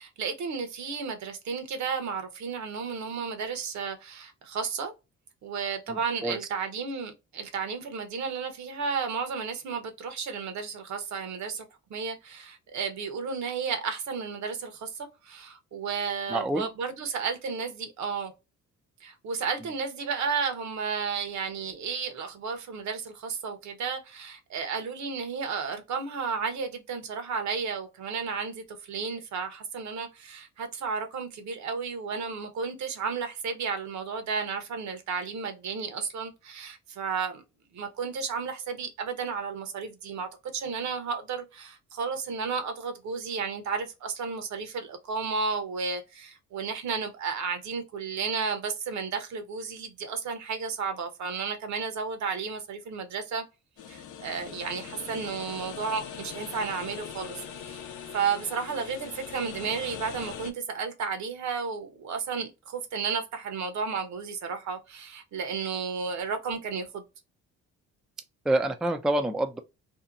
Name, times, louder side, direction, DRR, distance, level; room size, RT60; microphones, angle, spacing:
voice 1, 0.0-4.9 5.4-11.6 11.9-18.3 19.0-37.4 37.7-53.4 53.9-57.9 58.1-67.0, right 5 dB, 65° right, 0.9 m, -33 dB
voice 2, 5.9-6.4 16.3-16.7 68.5-69.6, right 1 dB, ahead, 0.3 m, -27 dB
sound 1, 53.8-60.5, left 8 dB, 80° left, 0.6 m, -41 dB
2.8 x 2.2 x 2.4 m
cardioid pair, 90°, 30 cm